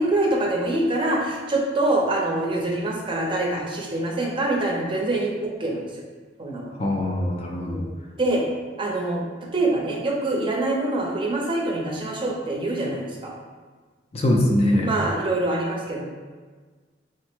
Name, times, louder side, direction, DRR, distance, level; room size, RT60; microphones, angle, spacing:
voice 1, 0.0-6.0 6.4-6.7 8.2-8.5 8.8-9.2 9.5-13.3 14.8-16.0, right 2 dB, 25° right, -1 dB, 0.6 m, -25 dB
voice 2, 6.8-7.9 14.1-14.9, left 1 dB, 35° left, 0 dB, 0.4 m, -22 dB
4.5 x 2.1 x 4.4 m, 1.5 s
head